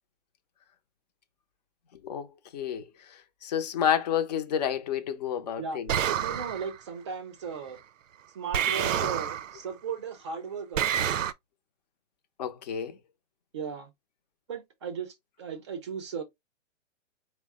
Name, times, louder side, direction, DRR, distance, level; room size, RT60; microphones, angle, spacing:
voice 1, 2.5-2.8 3.4-6.0 12.4-12.9, left 9 dB, 35° left, 0.5 m, -29 dB
sound 1, 5.9-6.8 8.5-9.6 10.8-11.3, right 9 dB, 90° right, 0.6 m, -28 dB
voice 2, 6.1-7.8 8.3-11.1 13.5-13.9 14.5-16.2, right 6 dB, 25° right, 0.5 m, -36 dB
4.6 x 2.0 x 3.5 m
hypercardioid pair, 160°, 37 cm